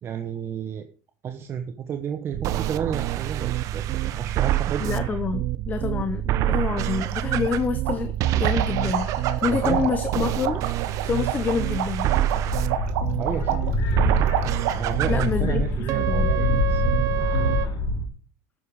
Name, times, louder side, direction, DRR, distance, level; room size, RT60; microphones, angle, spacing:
voice 1, 0.0-0.9 1.2-4.9 9.5-9.9 13.2-13.7 14.7-16.8, right 8 dB, 35° right, 6 dB, 1.3 m, -31 dB
sound 1, 2.3-17.7, right 13 dB, 50° right, 1.1 m, -26 dB
voice 2, 4.8-9.1 9.4-10.6 11.0-12.1 15.1-15.6 15.9-16.3, left 6 dB, 20° left, 10 dB, 1.1 m, -27 dB
sound 2, 7.1-7.2 7.4-7.5 7.9-15.1, right 11 dB, 90° right, 2.4 m, -29 dB
sound 3, 12.2-18.0, left 3 dB, 55° left, 4.6 m, -26 dB
13.0 x 10.0 x 5.0 m, 0.41 s
supercardioid pair, 135°, 7 cm